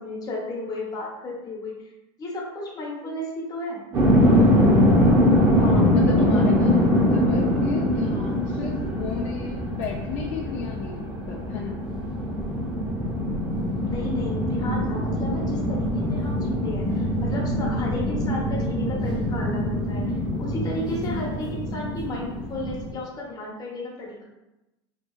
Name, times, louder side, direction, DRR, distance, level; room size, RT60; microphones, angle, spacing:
voice 1, 0.0-1.9 2.2-3.8 13.8-24.2, left 1 dB, 25° left, -2 dB, 0.7 m, -34 dB
sound 1, 3.9-22.9, left 1 dB, 35° right, 0.8 m, -23 dB
voice 2, 5.6-11.8, left 6 dB, 60° left, -2 dB, 0.4 m, -32 dB
2.9 x 2.3 x 2.3 m, 0.97 s
supercardioid pair, 125°, 14 cm